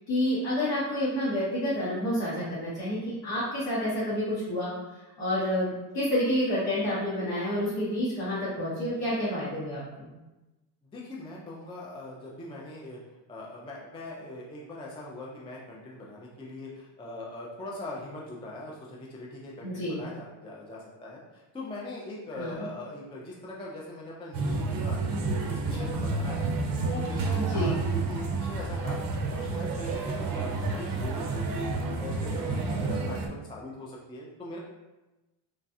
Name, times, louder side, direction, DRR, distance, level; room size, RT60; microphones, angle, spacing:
voice 1, 0.1-4.7 5.2-10.1 19.6-20.0 22.3-22.7 27.4-27.8, equal, 65° left, -10 dB, 1.2 m, -29 dB
voice 2, 10.8-13.0 13.3-26.5 26.8-31.7 32.0-34.6, left 1 dB, 15° left, -4 dB, 0.3 m, -41 dB
sound 1, 24.3-33.3, right 3 dB, 50° right, 0.5 m, -30 dB
3.1 x 2.3 x 2.6 m, 1.1 s
cardioid pair, 95°, 47 cm